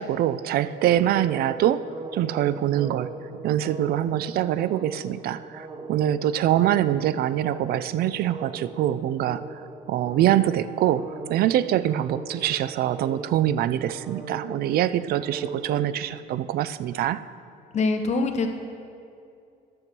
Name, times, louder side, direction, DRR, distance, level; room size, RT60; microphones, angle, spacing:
voice 1, 0.0-1.9 2.1-9.4 9.9-17.2, right 12 dB, 65° right, 15 dB, 0.4 m, -24 dB
sound 1, 0.7-16.2, right 3 dB, 30° right, 1.1 m, -40 dB
voice 2, 17.7-18.5, left 3 dB, 45° left, 5 dB, 1.0 m, -23 dB
11.0 x 6.9 x 6.0 m, 2.5 s
cardioid pair, 110°, 17 cm